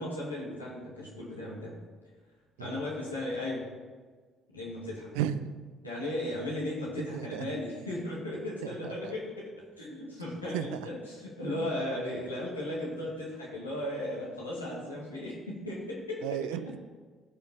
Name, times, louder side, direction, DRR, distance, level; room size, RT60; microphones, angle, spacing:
voice 1, 0.0-1.8 2.6-3.7 4.5-5.1 5.8-9.5 9.8-16.3, left 1 dB, 85° left, -6 dB, 2.5 m, -36 dB
voice 2, 5.1-5.5 7.0-7.5 8.6-9.1 10.5-10.7 11.5-11.7 16.2-16.8, right 11 dB, 65° right, 13 dB, 0.4 m, -34 dB
15.5 x 5.7 x 4.3 m, 1.5 s
figure-of-eight pair, 50°, 0 cm